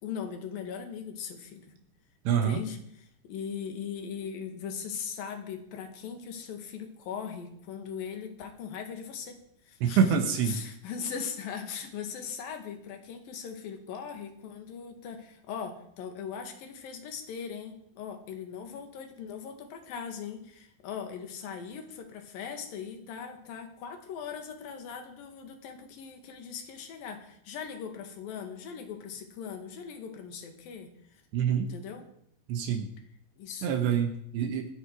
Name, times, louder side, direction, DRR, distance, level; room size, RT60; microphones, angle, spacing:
voice 1, 0.0-1.7 2.3-9.4 9.7-30.9 31.6-32.1 33.4-33.9, left 7 dB, 60° left, 5 dB, 3.5 m, -40 dB
voice 2, 2.3-2.6 9.8-10.6 31.3-31.7 32.5-32.9 33.6-34.7, right 7 dB, 80° right, 4 dB, 3.6 m, -26 dB
24.5 x 10.0 x 4.8 m, 0.71 s
omnidirectional pair, 5.0 m